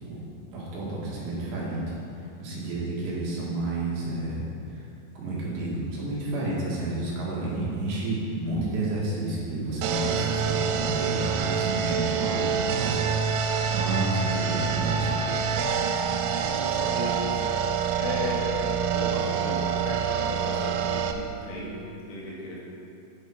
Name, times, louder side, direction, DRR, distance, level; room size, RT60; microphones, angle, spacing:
voice 1, 0.5-1.8 2.2-4.4 4.7-4.9 5.2-13.0 13.3-15.4, right 2 dB, 70° right, -6 dB, 3.7 m, -30 dB
sound 1, 9.8-21.1, right 7 dB, 90° right, 3.1 m, -26 dB
voice 2, 16.3-17.5 18.0-18.5 18.9-22.6, left 1 dB, 70° left, -5 dB, 3.9 m, -35 dB
9.9 x 8.2 x 4.5 m, 2.7 s
omnidirectional pair, 5.5 m